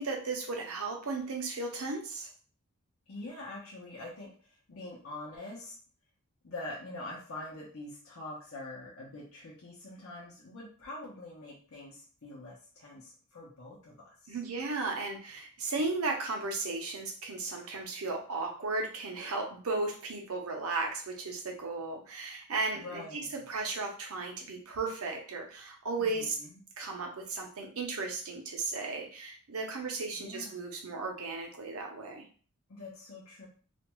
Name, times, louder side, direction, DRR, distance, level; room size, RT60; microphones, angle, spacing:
voice 1, 0.0-2.3 14.3-26.4 26.8-32.2, right 3 dB, 75° right, 1 dB, 0.7 m, -35 dB
voice 2, 3.1-5.7 6.4-14.4 22.8-23.3 26.0-26.6 30.2-30.6 32.7-33.5, left 2 dB, 70° left, -5 dB, 0.7 m, -45 dB
2.5 x 2.2 x 3.0 m, 0.42 s
head